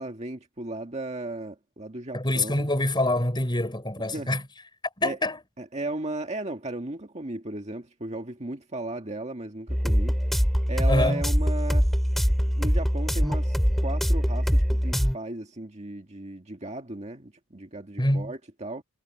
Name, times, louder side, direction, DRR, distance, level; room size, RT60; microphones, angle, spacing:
voice 1, 0.0-2.7 4.1-4.3 5.0-5.2 5.6-11.9 12.6-18.8, right 2 dB, 30° right, 1.8 m, -36 dB
voice 2, 2.1-4.4 5.0-5.4 10.9-11.2 18.0-18.3, left 1 dB, 20° left, 4.7 m, -25 dB
sound 1, 9.7-15.2, equal, ahead, 3.4 m, -23 dB
head